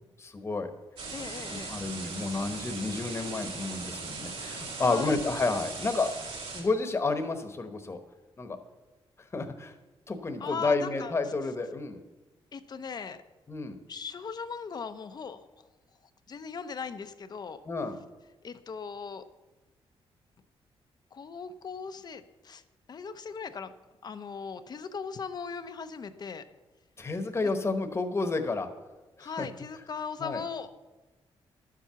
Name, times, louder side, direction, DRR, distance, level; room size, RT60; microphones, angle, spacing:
voice 1, 0.2-0.7 1.5-6.2 6.5-8.0 8.4-8.6 9.3-9.7 10.1-12.0 13.5-13.8 17.7-18.0 27.0-28.7 29.2-29.5 30.2-30.4, left 3 dB, 25° left, 7 dB, 1.1 m, -30 dB
sound 1, 1.0-6.6, right 4 dB, 70° right, 3.9 m, -39 dB
voice 2, 1.1-1.7 4.8-5.2 10.4-11.1 12.5-13.2 13.9-15.7 16.3-17.6 18.4-19.2 21.1-22.6 22.9-23.7 24.0-26.4 29.2-30.7, left 5 dB, 45° left, 11 dB, 0.7 m, -38 dB
11.5 x 7.5 x 6.9 m, 1.1 s
cardioid pair, 130°, 10 cm